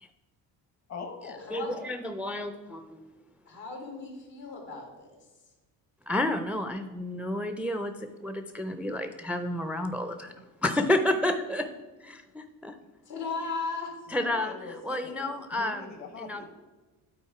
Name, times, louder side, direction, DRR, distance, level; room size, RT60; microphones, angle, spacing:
voice 1, 0.9-1.9 12.7-12.9 14.1-16.5, left 4 dB, 40° left, 5 dB, 1.1 m, -43 dB
voice 2, 1.5-3.0 6.1-7.9 8.2-10.3 10.6-11.7 12.0-12.7 14.1-14.5 14.9-15.8 16.2-16.5, left 1 dB, 5° right, 8 dB, 0.4 m, -30 dB
voice 3, 3.5-5.1 13.1-13.9, left 4 dB, 75° left, 1 dB, 2.5 m, -36 dB
8.8 x 4.1 x 4.8 m, 1.2 s
supercardioid pair, 75°, 42 cm